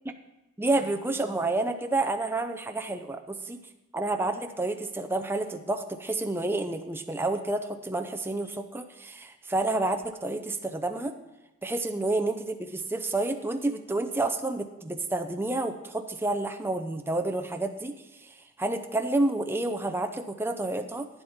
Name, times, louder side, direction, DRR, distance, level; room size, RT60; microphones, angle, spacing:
voice 1, 0.6-3.6 3.9-11.1 11.6-17.9 18.6-21.1, right 2 dB, 10° right, 6 dB, 0.6 m, -29 dB
11.5 x 9.6 x 4.3 m, 0.98 s
head